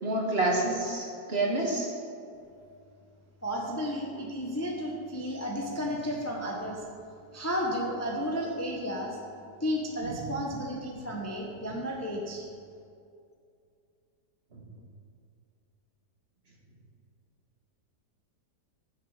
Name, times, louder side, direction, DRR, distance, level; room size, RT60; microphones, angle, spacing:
voice 1, 0.0-1.9 4.4-4.5 10.1-10.2 14.5-14.6, right 2 dB, 35° right, -1 dB, 1.7 m, -28 dB
voice 2, 3.4-6.8 7.3-9.2 9.6-12.5, equal, 10° left, -1 dB, 0.9 m, -33 dB
15.0 x 7.7 x 5.0 m, 2.4 s
omnidirectional pair, 1.9 m